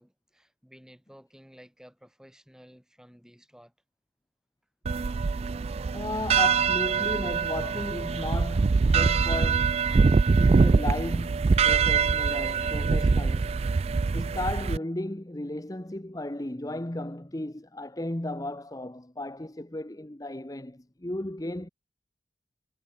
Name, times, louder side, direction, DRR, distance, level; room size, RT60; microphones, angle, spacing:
voice 1, 0.0-3.7, equal, 5° right, 6.4 m, -54 dB
sound 1, 4.9-14.8, right 5 dB, 35° right, 0.3 m, -24 dB
voice 2, 5.9-9.8 10.4-13.6 14.1-21.7, left 1 dB, 20° left, 1.0 m, -35 dB
head